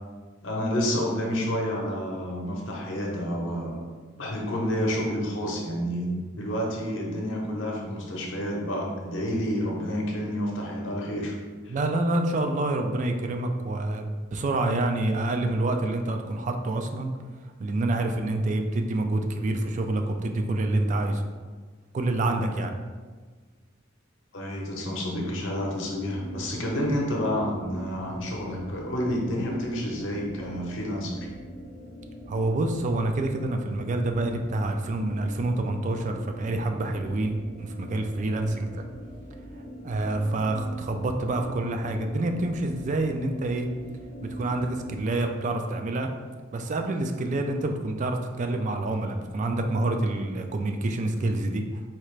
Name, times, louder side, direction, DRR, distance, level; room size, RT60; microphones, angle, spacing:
voice 1, 0.4-3.8 4.2-11.4 11.6-11.7 24.3-31.2, equal, 65° left, -1 dB, 0.7 m, -29 dB
voice 2, 11.7-17.1 17.6-21.2 21.9-22.8 32.3-37.3 37.6-38.8 39.8-43.7 44.4-46.1 46.5-51.8, right 2 dB, 40° right, 5 dB, 0.3 m, -27 dB
sound 1, 26.0-45.2, right 1 dB, 35° left, 0.4 m, -43 dB
4.3 x 2.4 x 3.1 m, 1.4 s
head